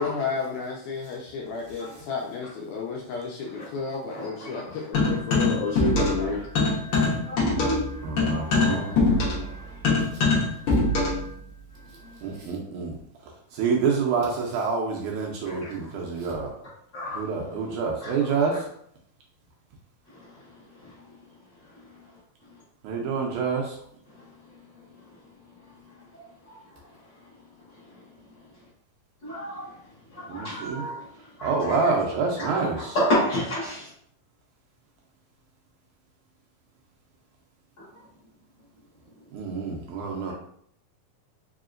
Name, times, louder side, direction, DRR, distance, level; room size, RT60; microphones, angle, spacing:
voice 1, 0.0-6.4, left 5 dB, 80° left, -1 dB, 1.8 m, -31 dB
voice 2, 4.1-5.4 6.2-10.1 15.5-15.7 16.9-17.2 18.0-18.6 26.5-26.6 29.2-29.7 30.1-31.1 31.4-32.0 32.3-33.9, equal, 45° left, -8 dB, 1.7 m, -32 dB
sound 1, 4.9-6.3 6.5-11.3, left 3 dB, 60° left, 1.4 m, -23 dB
voice 3, 8.0-8.9 12.2-12.9 13.6-16.5 17.2-18.5 22.8-23.6 30.3-30.8 31.4-32.9 39.3-40.3, right 5 dB, 80° right, 0 dB, 2.0 m, -27 dB
4.9 x 2.9 x 2.5 m, 0.66 s
omnidirectional pair, 3.8 m